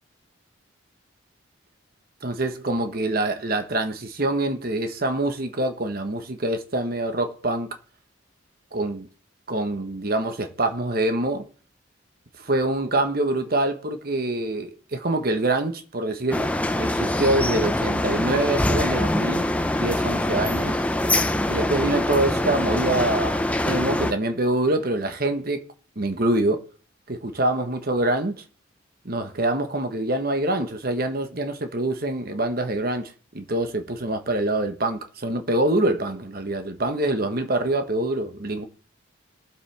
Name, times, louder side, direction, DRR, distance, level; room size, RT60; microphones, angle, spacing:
voice 1, 2.2-7.8 8.7-9.1 9.5-11.5 12.4-16.5 16.8-20.8 21.5-25.6 26.0-26.6 27.1-28.4 29.0-38.6, right 1 dB, 50° right, 1.3 m, -25 dB
sound 1, 16.3-24.1, left 1 dB, 5° left, 0.6 m, -24 dB
21.0 x 7.5 x 3.5 m
head